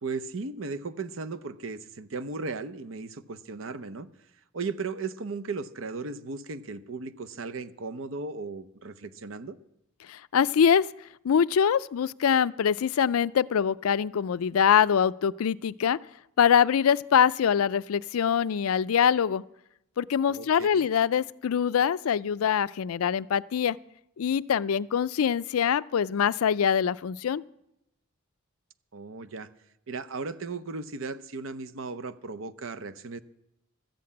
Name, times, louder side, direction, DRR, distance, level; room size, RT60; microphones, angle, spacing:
voice 1, 0.0-4.1 4.5-9.6 20.3-20.9 28.9-29.5 29.9-33.2, right 4 dB, 65° right, 12 dB, 0.7 m, -36 dB
voice 2, 10.1-10.9 11.2-16.0 16.4-19.4 20.0-23.8 24.2-27.4, left 8 dB, 85° left, 18 dB, 0.4 m, -24 dB
13.0 x 7.7 x 8.5 m, 0.85 s
head